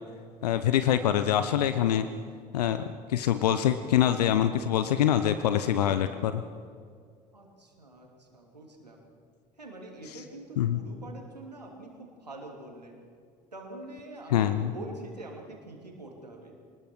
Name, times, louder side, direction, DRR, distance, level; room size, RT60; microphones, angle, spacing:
voice 1, 0.4-2.1 2.5-2.8 3.1-6.4 10.1-10.2 10.6-10.8 14.3-14.7, left 10 dB, 75° left, 11 dB, 0.8 m, -25 dB
voice 2, 7.3-9.0 9.6-13.0 13.5-16.5, right 2 dB, 90° right, 1 dB, 3.0 m, -45 dB
24.5 x 20.0 x 6.2 m, 2.2 s
figure-of-eight pair, 60°, 20 cm